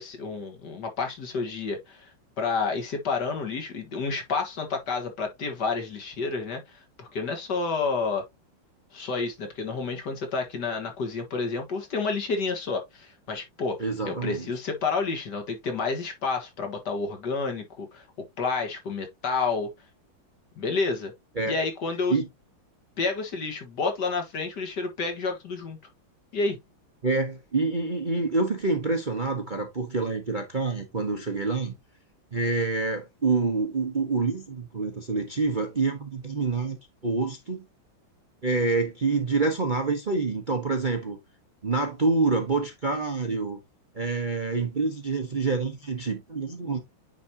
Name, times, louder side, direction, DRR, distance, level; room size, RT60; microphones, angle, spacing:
voice 1, 0.0-8.2 8.9-13.8 14.1-18.0 18.4-19.7 20.6-21.1 21.4-22.2 23.0-25.8 26.3-26.6, left 4 dB, 60° left, 2.1 m, -30 dB
voice 2, 13.8-14.5 21.4-21.6 22.1-22.3 27.0-31.7 32.3-36.8 37.0-37.7 38.4-41.2 41.6-43.6 43.9-46.8, right 3 dB, 35° right, 0.9 m, -27 dB
9.3 x 4.3 x 2.8 m
omnidirectional pair, 2.2 m